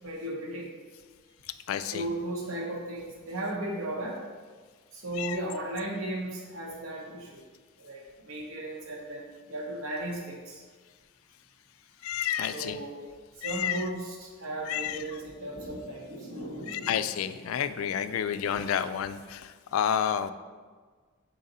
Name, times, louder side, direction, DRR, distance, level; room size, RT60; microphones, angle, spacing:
voice 1, 0.0-0.7 1.9-4.2 4.9-7.4 7.8-10.6 12.5-13.0 13.4-17.3 18.2-18.4, right 1 dB, 75° right, -1 dB, 1.0 m, -36 dB
voice 2, 1.7-2.0 5.2-5.4 12.0-12.8 13.4-13.9 14.7-15.0 16.7-20.3, left 9 dB, 70° left, 12 dB, 0.3 m, -30 dB
6.6 x 3.9 x 4.0 m, 1.5 s
head